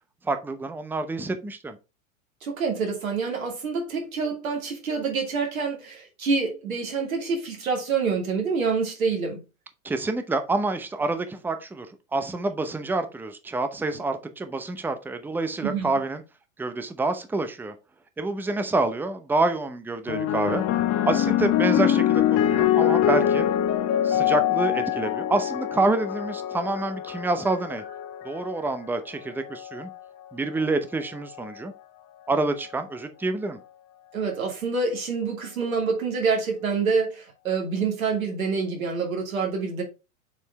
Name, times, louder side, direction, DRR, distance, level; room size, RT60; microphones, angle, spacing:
voice 1, 0.2-1.8 9.8-16.2 16.6-17.7 18.2-20.6 21.0-23.5 24.0-27.8 28.2-29.9 30.3-31.7 32.3-33.6, right 3 dB, 5° right, 0.7 m, -27 dB
voice 2, 2.4-9.4 15.6-15.9 34.1-39.8, right 5 dB, 75° right, 2.7 m, -27 dB
sound 1, 20.1-28.6 29.5-29.9, left 11 dB, 35° left, 1.2 m, -24 dB
7.2 x 4.6 x 3.5 m
hypercardioid pair, 105°, 42 cm